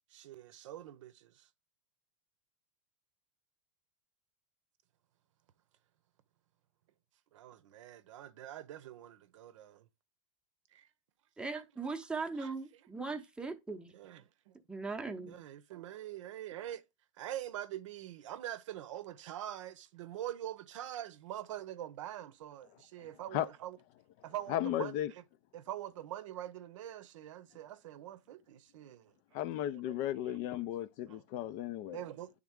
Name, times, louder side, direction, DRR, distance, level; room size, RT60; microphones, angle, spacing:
voice 1, 0.1-1.5 7.3-9.9 10.7-10.9 12.4-12.5 13.9-14.6 15.3-16.8 17.1-23.8 24.2-25.2 25.5-29.4 29.7-30.7 31.1-31.2 31.9-32.3, right 12 dB, 80° right, 0.7 m, -44 dB
voice 2, 11.4-13.9 14.7-15.4, right 4 dB, 5° right, 0.7 m, -39 dB
voice 3, 24.5-25.1 29.3-32.0, left 12 dB, 50° left, 0.4 m, -35 dB
8.9 x 3.6 x 3.6 m
supercardioid pair, 125°, 16 cm